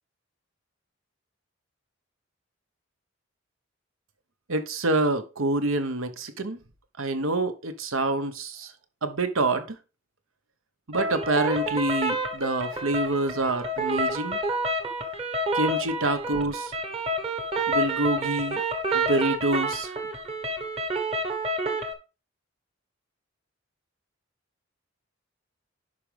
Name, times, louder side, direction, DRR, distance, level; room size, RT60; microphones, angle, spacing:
voice 1, 4.5-6.6 7.0-8.7 9.0-9.8 10.9-14.4 15.5-16.7 17.7-18.6 18.9-19.9, right 2 dB, 75° right, 1.1 m, -27 dB
sound 1, 10.9-21.9, right 1 dB, 30° right, 1.2 m, -29 dB
11.0 x 5.1 x 3.4 m
head